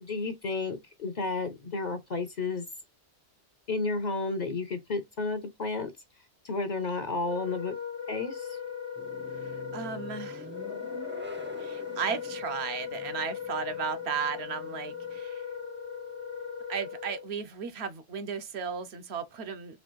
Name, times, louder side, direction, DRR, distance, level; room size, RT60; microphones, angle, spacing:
voice 1, 0.0-2.7 3.7-5.9 6.4-7.7 8.1-8.5, left 3 dB, 50° left, 0.6 m, -32 dB
Wind instrument woodwind instrument, 7.2-17.3, left 7 dB, 85° left, 1.2 m, -38 dB
sound 1, 9.0-15.2, right 1 dB, 15° right, 0.4 m, -47 dB
voice 2, 9.4-10.5 11.6-15.4 16.7-19.8, right 6 dB, 70° right, 0.9 m, -35 dB
4.2 x 2.3 x 3.0 m
omnidirectional pair, 1.2 m